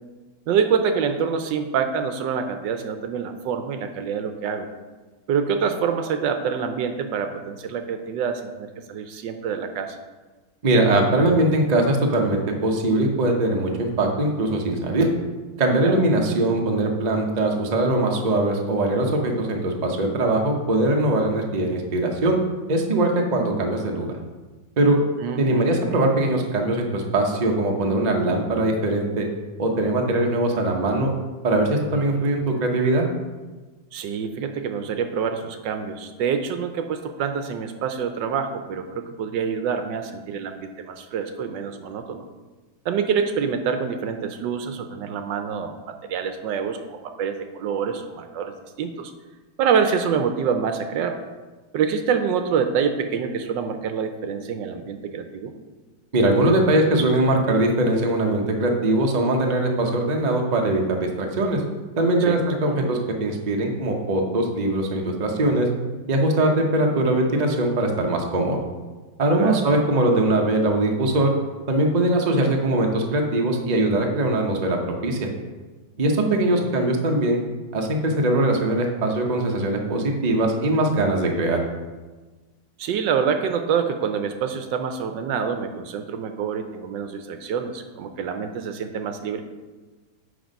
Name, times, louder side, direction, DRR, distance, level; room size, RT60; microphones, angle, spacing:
voice 1, 0.5-4.7 5.3-10.0 15.8-16.0 25.2-25.7 33.9-42.2 42.8-49.1 49.6-51.2 51.7-55.5 62.2-62.4 69.4-69.6 76.3-76.7 82.8-89.4, right 6 dB, 70° right, 7 dB, 1.2 m, -26 dB
voice 2, 10.6-15.1 15.6-22.4 22.7-24.1 24.8-25.0 25.4-29.3 29.6-31.1 31.4-33.1 56.1-61.6 62.0-65.7 66.1-68.6 69.2-71.3 71.7-75.3 76.0-77.4 77.7-81.6, right 2 dB, 40° right, 1 dB, 0.5 m, -21 dB
9.5 x 3.7 x 5.2 m, 1.3 s
omnidirectional pair, 2.1 m